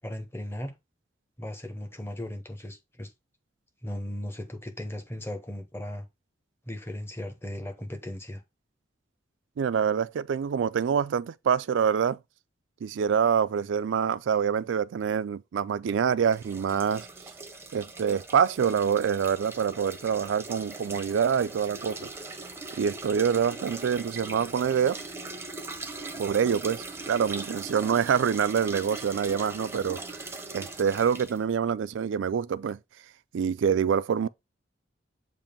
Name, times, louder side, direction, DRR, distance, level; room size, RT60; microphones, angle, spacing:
voice 1, 0.0-0.7 1.4-3.1 3.8-6.1 6.7-8.4, left 1 dB, 15° left, 1.0 m, -37 dB
voice 2, 9.6-12.2 12.8-17.1 17.7-22.1 22.8-25.0 26.2-30.0 30.5-32.8 33.3-34.3, right 7 dB, 75° right, 0.3 m, -26 dB
sound 1, 16.3-31.4, right 3 dB, 15° right, 0.7 m, -40 dB
7.3 x 2.6 x 5.1 m
head